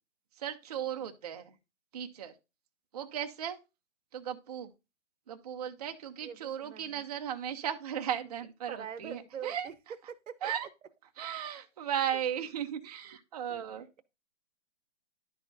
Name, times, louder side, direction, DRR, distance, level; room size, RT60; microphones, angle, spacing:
voice 1, 0.4-1.5 1.9-2.3 2.9-3.6 4.1-4.7 5.3-9.7 10.4-10.7 11.2-13.9, right 9 dB, 35° right, 0.5 m, -36 dB
voice 2, 6.2-7.0 8.7-9.7 10.1-10.5 12.1-12.2 13.5-14.0, right 8 dB, 80° right, 0.8 m, -44 dB
11.0 x 4.3 x 2.6 m
hypercardioid pair, 155°, 37 cm